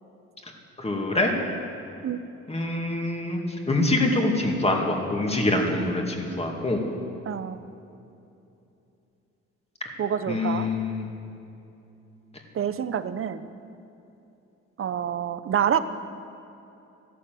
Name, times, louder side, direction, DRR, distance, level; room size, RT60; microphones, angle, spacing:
voice 1, 0.8-1.3 2.5-3.4 3.7-6.8 10.3-11.1, left 2 dB, 20° left, 1 dB, 2.4 m, -25 dB
voice 2, 7.3-7.6 10.0-10.7 12.5-13.4 14.8-15.8, right 9 dB, 45° right, 12 dB, 0.8 m, -27 dB
14.0 x 12.0 x 7.8 m, 2.8 s
cardioid pair, 90°, 30 cm